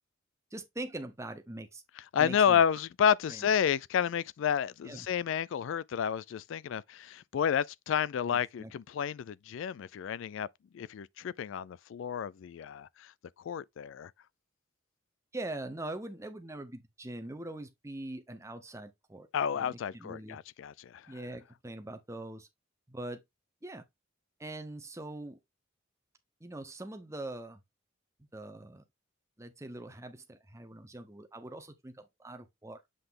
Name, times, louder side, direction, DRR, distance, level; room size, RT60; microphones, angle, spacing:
voice 1, 0.5-1.8 2.2-2.6 3.3-3.5 4.8-5.1 8.3-8.7 15.3-19.3 19.5-20.4 21.1-22.5 22.9-23.2 23.6-23.8 24.4-25.4 26.4-27.6 28.2-28.8 29.4-32.8, right 1 dB, 15° right, 0.8 m, -42 dB
voice 2, 2.1-10.5 10.7-13.1 13.4-14.1 19.3-21.0, left 8 dB, 65° left, 0.3 m, -30 dB
7.8 x 3.3 x 3.7 m
head